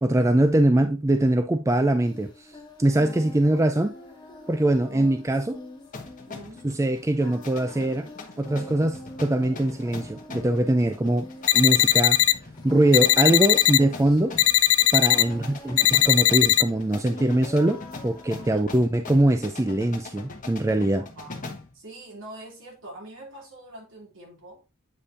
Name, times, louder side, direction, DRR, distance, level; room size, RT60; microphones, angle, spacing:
voice 1, 0.0-2.5 2.8-3.9 4.5-5.6 6.6-8.1 8.4-11.3 11.5-12.2 12.6-14.4 14.9-21.0, right 1 dB, 15° right, 0.4 m, -22 dB
Singing, 2.0-18.6, left 1 dB, 20° left, 1.4 m, -45 dB
voice 2, 2.9-3.3 4.8-5.1 6.3-6.7 15.0-15.3 18.3-18.8 20.9-24.6, right 1 dB, 65° right, 2.9 m, -44 dB
sound 1, 5.9-21.8, left 3 dB, 40° left, 1.2 m, -42 dB
sound 2, 11.5-12.3 12.9-13.8 14.4-15.2 15.8-16.6, left 15 dB, 70° left, 0.4 m, -19 dB
8.2 x 5.4 x 2.6 m
head